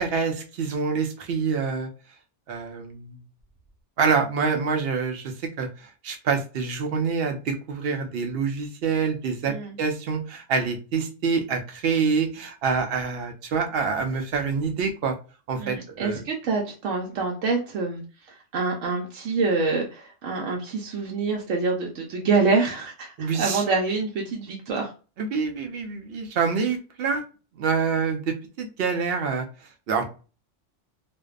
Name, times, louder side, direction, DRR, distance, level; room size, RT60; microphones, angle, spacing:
voice 1, 0.0-1.9 2.5-3.2 4.0-15.1 15.5-16.2 23.2-23.6 25.2-27.2 27.5-29.5 29.9-30.0, right 5 dB, 60° right, 5 dB, 0.7 m, -26 dB
voice 2, 9.5-9.8 15.6-24.9, right 4 dB, 90° right, 0 dB, 1.0 m, -26 dB
2.5 x 2.2 x 2.3 m, 0.34 s
omnidirectional pair, 1.2 m